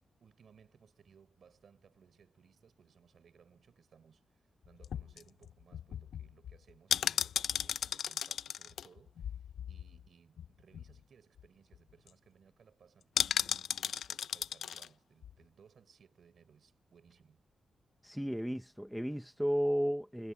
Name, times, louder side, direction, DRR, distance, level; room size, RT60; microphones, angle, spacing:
voice 1, 0.2-17.4, right 7 dB, 55° right, 4.9 m, -63 dB
sound 1, 4.6-10.1 10.4-10.5 10.7-11.0 11.4-11.5 11.7-12.1 13.2-14.9 15.2-15.3, left 9 dB, 80° left, 0.4 m, -35 dB
voice 2, 18.0-20.3, equal, ahead, 0.8 m, -33 dB
wide cardioid pair, 160°, 0 cm